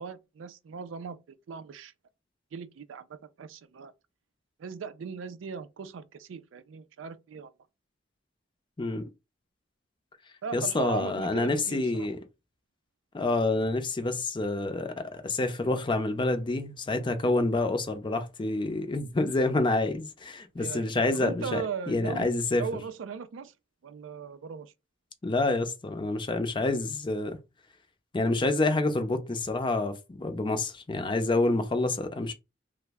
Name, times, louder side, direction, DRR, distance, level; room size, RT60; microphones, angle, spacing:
voice 1, 0.0-1.9 2.5-3.9 4.6-7.5 10.4-12.1 20.6-22.3 22.6-23.5 23.8-24.7, right 6 dB, 85° right, 0.4 m, -38 dB
voice 2, 8.8-9.1 10.5-12.2 13.1-22.6 25.2-27.4 28.1-32.3, left 2 dB, 25° left, 0.5 m, -28 dB
3.2 x 2.0 x 3.4 m
head